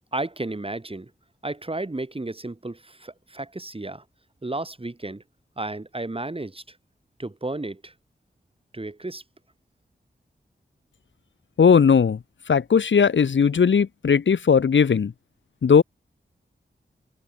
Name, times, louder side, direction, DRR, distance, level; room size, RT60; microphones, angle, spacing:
voice 1, 0.1-1.1 1.4-4.0 4.4-5.2 5.6-6.8 7.2-7.9 8.7-9.2, right 2 dB, 30° right, 7.6 m, -33 dB
voice 2, 11.6-12.2 12.5-15.1 15.6-15.8, left 6 dB, 85° left, 1.8 m, -18 dB
cardioid pair, 60°, 19 cm